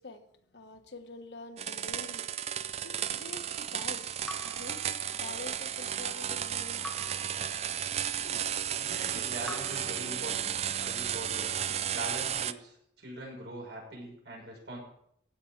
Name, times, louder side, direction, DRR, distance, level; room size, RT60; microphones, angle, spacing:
voice 1, 0.0-6.9 8.2-8.5, left 3 dB, 75° left, 1.4 m, -47 dB
sound 1, 1.6-12.5, right 9 dB, 35° right, 0.4 m, -34 dB
Raindrop / Drip, 4.3-5.6 6.8-8.2 9.4-10.8, left 1 dB, 5° left, 1.0 m, -47 dB
voice 2, 8.8-11.5 11.9-14.8, right 1 dB, 80° right, 5.8 m, -42 dB
15.5 x 6.0 x 7.4 m
head